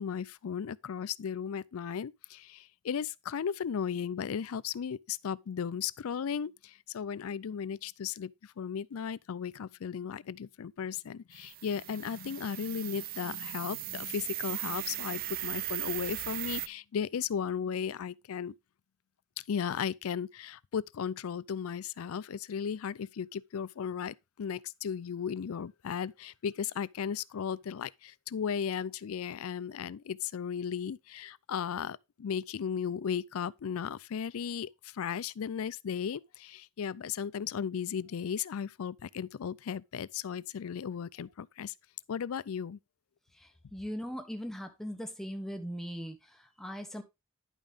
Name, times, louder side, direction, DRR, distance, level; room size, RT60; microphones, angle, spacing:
voice 1, 0.0-18.5 19.5-41.7 42.1-42.8, left 7 dB, 75° left, 0.4 m, -36 dB
sound 1, 11.3-16.7, right 16 dB, 40° right, 0.4 m, -38 dB
voice 2, 43.4-47.0, equal, ahead, 1.3 m, -40 dB
11.0 x 5.2 x 3.6 m
head